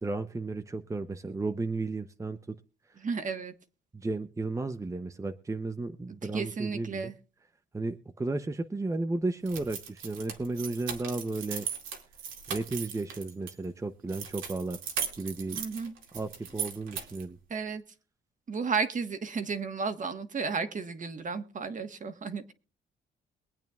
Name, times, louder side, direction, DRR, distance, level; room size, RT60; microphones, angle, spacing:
voice 1, 0.0-2.5 2.9-3.0 3.9-7.1 7.7-11.7 12.5-14.8 15.2-15.6 16.1-17.4, right 3 dB, 15° right, 8 dB, 0.7 m, -34 dB
voice 2, 3.0-3.5 6.2-7.1 15.5-15.9 17.5-17.8 18.5-22.5, right 5 dB, 40° right, 8 dB, 1.4 m, -33 dB
sound 1, 9.5-13.5 14.1-17.3, right 7 dB, 85° right, 2.3 m, -38 dB
23.0 x 8.9 x 2.4 m, 0.34 s
cardioid pair, 90°, 20 cm